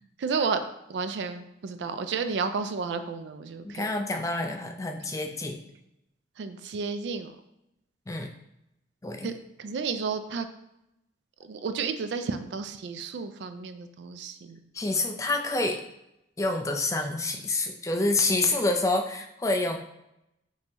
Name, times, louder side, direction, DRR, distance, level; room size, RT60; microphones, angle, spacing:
voice 1, 0.2-0.6 0.9-3.9 6.4-7.4 9.2-9.3 9.6-10.5 11.4-14.6, right 5 dB, 75° right, 10 dB, 0.3 m, -32 dB
voice 2, 3.6-5.6 8.1-8.3 9.0-9.3 14.7-15.8 16.4-19.8, left 2 dB, 15° left, 4 dB, 0.3 m, -27 dB
5.3 x 2.7 x 2.9 m, 0.84 s
head